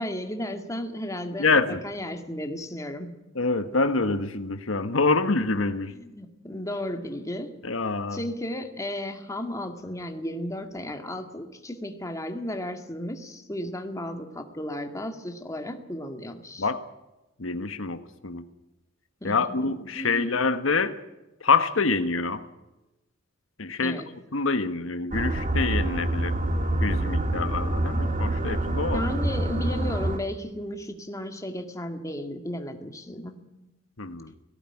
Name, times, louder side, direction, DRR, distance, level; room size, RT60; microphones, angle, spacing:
voice 1, 0.0-3.2 5.9-7.6 8.1-16.7 19.2-20.3 23.8-24.1 28.9-33.5, left 1 dB, 15° left, 5 dB, 2.1 m, -34 dB
voice 2, 1.4-1.8 3.3-5.9 7.6-8.2 16.6-16.8 17.4-18.4 19.2-21.0 21.4-22.4 23.6-24.0 24.3-26.3 26.8-29.0 34.0-34.3, left 4 dB, 80° left, 9 dB, 1.4 m, -26 dB
sound 1, 25.1-30.2, right 1 dB, 40° right, 1.7 m, -26 dB
18.0 x 17.0 x 10.0 m, 0.99 s
head